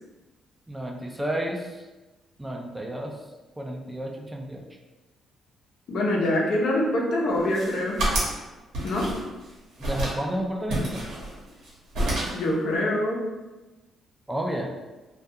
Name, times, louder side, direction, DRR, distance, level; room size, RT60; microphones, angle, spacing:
voice 1, 0.7-1.9 2.4-3.1 3.6-4.6 9.8-11.1 14.3-14.8, right 1 dB, 10° right, 0 dB, 0.4 m, -31 dB
voice 2, 5.9-8.0 8.8-9.1 12.3-13.2, left 1 dB, 70° left, -2 dB, 0.6 m, -25 dB
sound 1, 7.3-8.4 8.7-9.5 9.8-10.2 10.7-11.7 11.9-12.5, right 1 dB, 80° right, 0.9 m, -28 dB
2.3 x 2.2 x 2.7 m, 1.1 s
cardioid pair, 90°, 0 cm